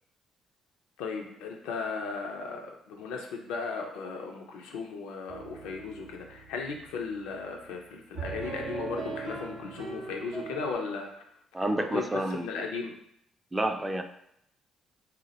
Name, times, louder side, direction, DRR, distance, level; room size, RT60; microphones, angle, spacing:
voice 1, 1.0-11.1 11.6-13.0, left 4 dB, 75° left, 2 dB, 0.3 m, -36 dB
sound 1, 5.3-10.7, right 4 dB, 85° right, 0.6 m, -41 dB
voice 2, 11.5-12.4 13.5-14.0, right 1 dB, 15° right, 5 dB, 0.3 m, -29 dB
2.2 x 2.0 x 2.8 m, 0.74 s
hypercardioid pair, 50°, 0 cm